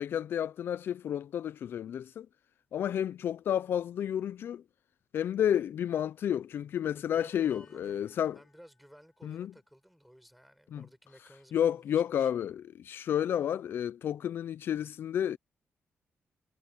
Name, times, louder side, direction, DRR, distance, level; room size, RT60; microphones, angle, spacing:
voice 1, 0.0-2.3 2.7-4.6 5.1-8.4 9.2-9.5 10.7-10.9 11.5-15.4, left 9 dB, 65° left, 0.4 m, -31 dB
sound 1, 7.1-10.1, left 5 dB, 35° left, 7.1 m, -64 dB
voice 2, 7.1-12.3, equal, ahead, 6.0 m, -56 dB
wide cardioid pair, 160°, 4 cm